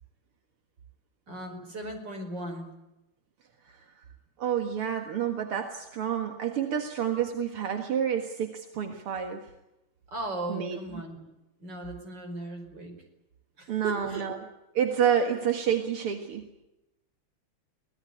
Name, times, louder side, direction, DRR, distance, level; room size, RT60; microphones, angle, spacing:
voice 1, 1.3-2.7 10.1-11.2 11.6-13.0 13.6-14.3, right 2 dB, 50° right, 5 dB, 5.8 m, -37 dB
voice 2, 4.4-9.4 10.5-10.8 13.7-14.4 14.7-16.6, right 8 dB, 80° right, 5 dB, 2.6 m, -29 dB
23.5 x 19.0 x 9.9 m, 0.96 s
omnidirectional pair, 2.4 m